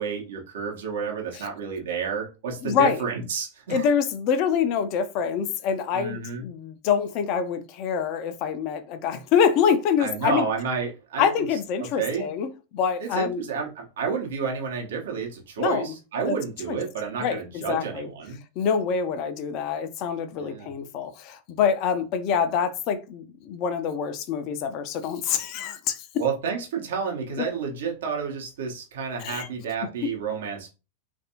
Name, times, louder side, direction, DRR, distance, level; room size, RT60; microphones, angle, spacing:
voice 1, 0.0-3.9 5.9-6.4 10.0-11.3 12.0-12.3 13.0-18.4 20.4-20.7 26.2-30.7, right 6 dB, 60° right, 0.9 m, -30 dB
voice 2, 2.6-3.0 3.7-10.4 11.2-13.4 15.6-15.9 16.3-16.4 16.7-16.8 17.2-18.1 18.6-26.1 29.2-29.5, left 7 dB, 40° left, 0.5 m, -25 dB
3.3 x 2.5 x 2.7 m
figure-of-eight pair, 90°, 0 cm